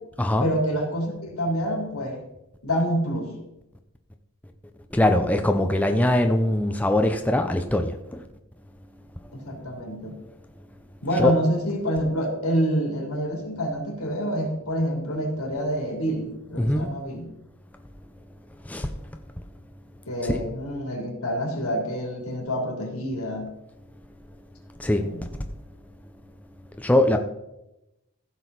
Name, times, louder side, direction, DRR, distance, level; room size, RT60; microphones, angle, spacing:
voice 1, 0.4-2.2 2.6-3.3 9.3-10.2 11.0-17.3 20.0-23.5 25.0-25.3, equal, 85° left, 1 dB, 3.2 m, -27 dB
voice 2, 4.9-7.9 11.2-11.3 16.6-16.9 18.7-18.9 20.3-20.4 24.8-25.0 26.8-27.2, left 1 dB, 5° left, 5 dB, 0.6 m, -21 dB
15.0 x 6.4 x 4.0 m, 0.91 s
head